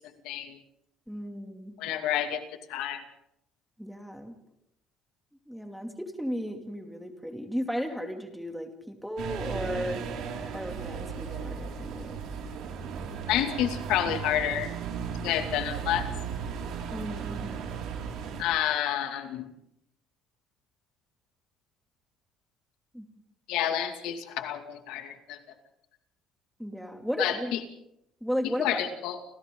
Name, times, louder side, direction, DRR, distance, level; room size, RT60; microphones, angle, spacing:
voice 1, 0.2-0.6 1.8-2.4 2.7-3.0 13.3-14.7 15.2-16.1 18.4-19.5 23.5-25.4 27.2-27.6 28.6-29.2, left 10 dB, 85° left, 6 dB, 2.5 m, -29 dB
voice 2, 1.1-1.7 3.8-4.3 5.5-10.0 10.5-12.2 16.9-17.8 22.9-23.1 26.6-27.5 28.2-28.8, equal, ahead, 3 dB, 2.7 m, -35 dB
sound 1, 9.2-18.4, right 6 dB, 65° right, 5.5 m, -36 dB
29.5 x 26.5 x 3.9 m, 0.81 s
cardioid pair, 150°, 0 cm